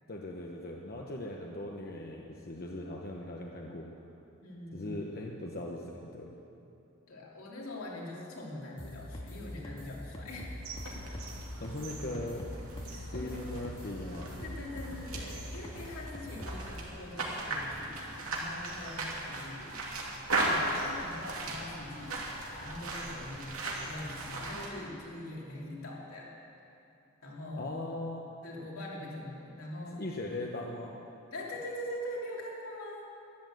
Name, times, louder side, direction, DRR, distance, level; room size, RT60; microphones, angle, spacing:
voice 1, 0.1-3.9 4.7-6.3 11.6-12.5 12.9-14.3 27.5-28.2 29.9-31.0, left 1 dB, 45° left, -1 dB, 1.0 m, -39 dB
voice 2, 4.4-4.9 7.1-10.5 10.8-11.0 12.9-13.3 14.4-20.1 20.3-22.2 22.6-26.3 27.2-27.7 28.4-30.0 31.3-33.1, left 1 dB, 80° left, -4 dB, 3.0 m, -43 dB
sound 1, 8.8-16.7, left 1 dB, 25° left, 1.9 m, -43 dB
sound 2, 10.6-24.7, right 2 dB, 80° right, 2.5 m, -38 dB
13.0 x 11.5 x 7.8 m, 2.8 s
head